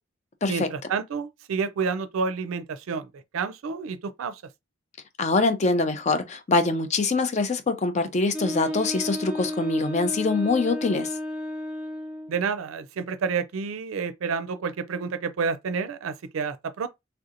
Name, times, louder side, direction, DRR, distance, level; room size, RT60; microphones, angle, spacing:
voice 1, 0.5-4.4 12.3-16.9, right 5 dB, 90° right, 0.4 m, -29 dB
voice 2, 5.2-11.1, left 3 dB, 35° left, 0.4 m, -24 dB
Wind instrument woodwind instrument, 8.3-12.4, left 1 dB, 5° right, 0.8 m, -33 dB
3.4 x 2.7 x 2.5 m
head